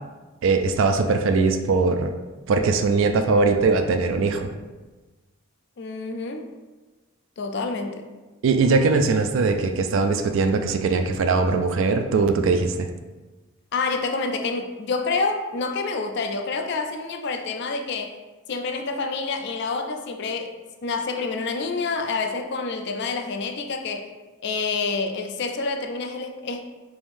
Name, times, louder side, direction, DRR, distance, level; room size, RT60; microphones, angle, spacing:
voice 1, 0.4-2.1 2.5-4.5 8.4-12.9, right 4 dB, 65° right, 6 dB, 0.3 m, -21 dB
voice 2, 5.8-6.5 7.4-8.1 13.7-18.1 18.5-20.5 20.8-24.1 24.4-26.6, left 4 dB, 55° left, 5 dB, 0.4 m, -28 dB
5.0 x 3.6 x 2.6 m, 1.2 s
head